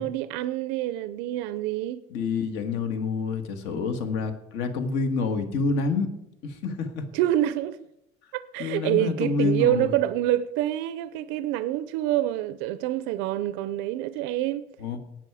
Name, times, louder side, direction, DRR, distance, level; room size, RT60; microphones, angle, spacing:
voice 1, 0.0-2.0 7.1-7.8 8.3-14.7, right 13 dB, 90° right, 0.5 m, -26 dB
voice 2, 2.1-6.1 6.4-7.0 8.6-9.9 14.8-15.0, left 4 dB, 70° left, 1.8 m, -27 dB
18.5 x 6.3 x 4.9 m
cardioid pair, 155°, 19 cm